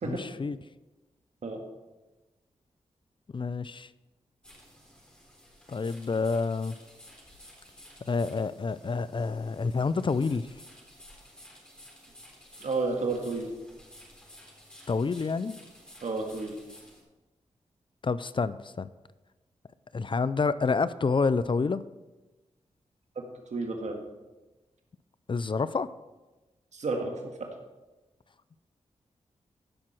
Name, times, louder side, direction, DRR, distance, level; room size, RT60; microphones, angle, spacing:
voice 1, 0.0-0.6 3.3-3.9 5.7-6.8 8.0-10.5 14.9-15.6 18.0-18.9 19.9-21.8 25.3-25.9, left 4 dB, 40° left, 16 dB, 0.5 m, -28 dB
sound 1, 4.4-17.0, equal, 5° left, 3.7 m, -53 dB
voice 2, 12.6-13.5 16.0-16.5 23.2-23.3 23.5-24.0 26.7-27.5, right 3 dB, 70° right, 3 dB, 1.8 m, -31 dB
15.0 x 6.1 x 4.5 m, 1.1 s
cardioid pair, 50°, 12 cm